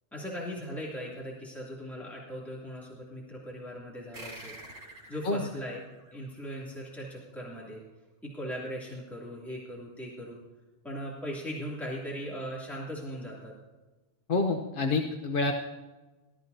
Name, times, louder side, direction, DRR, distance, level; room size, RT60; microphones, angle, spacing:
voice 1, 0.1-4.5 5.1-5.8 6.1-7.8 8.2-10.4 10.8-13.5, equal, ahead, -5 dB, 2.7 m, -39 dB
sound 1, 4.1-7.1, right 1 dB, 70° right, 3.7 m, -49 dB
voice 2, 14.3-15.5, left 3 dB, 50° left, 4 dB, 0.9 m, -27 dB
19.5 x 13.0 x 2.7 m, 1.2 s
omnidirectional pair, 1.2 m